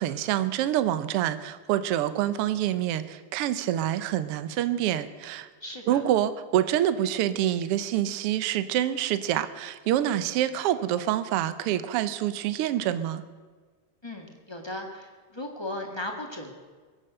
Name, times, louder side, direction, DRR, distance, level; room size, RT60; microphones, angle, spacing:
voice 1, 0.0-5.5 5.9-13.2, right 12 dB, 75° right, 13 dB, 1.3 m, -26 dB
voice 2, 5.6-6.0 14.0-16.5, left 1 dB, 15° left, 2 dB, 0.8 m, -37 dB
23.0 x 7.9 x 7.8 m, 1.5 s
omnidirectional pair, 3.5 m